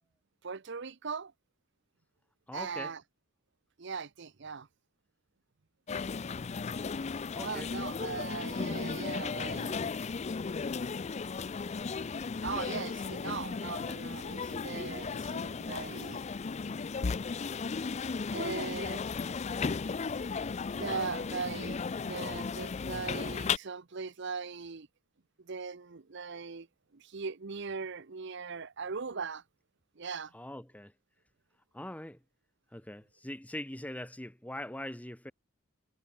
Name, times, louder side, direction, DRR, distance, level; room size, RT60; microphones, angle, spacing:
voice 1, 0.4-1.3 2.5-3.0 3.8-4.7 7.4-9.8 12.4-16.2 18.3-19.0 20.7-21.8 22.0-24.9 25.5-26.7 26.9-29.4 30.0-30.3, right 5 dB, 55° right, 0.8 m, -39 dB
voice 2, 2.5-2.9 7.3-7.7 30.3-30.9 31.7-32.2 32.7-35.3, left 1 dB, 5° left, 0.9 m, -42 dB
sound 1, 5.9-23.6, left 5 dB, 30° left, 0.4 m, -35 dB
head